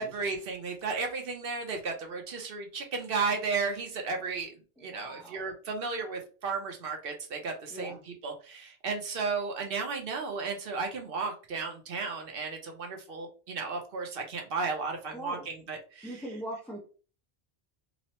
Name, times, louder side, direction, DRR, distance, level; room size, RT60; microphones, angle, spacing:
voice 1, 0.0-4.5 4.8-7.9 8.2-16.2, right 4 dB, 65° right, 3 dB, 0.9 m, -34 dB
voice 2, 4.8-5.5 7.7-8.0 15.1-15.5 16.0-16.8, right 1 dB, ahead, -6 dB, 0.4 m, -41 dB
3.0 x 2.0 x 2.8 m, 0.37 s
omnidirectional pair, 1.1 m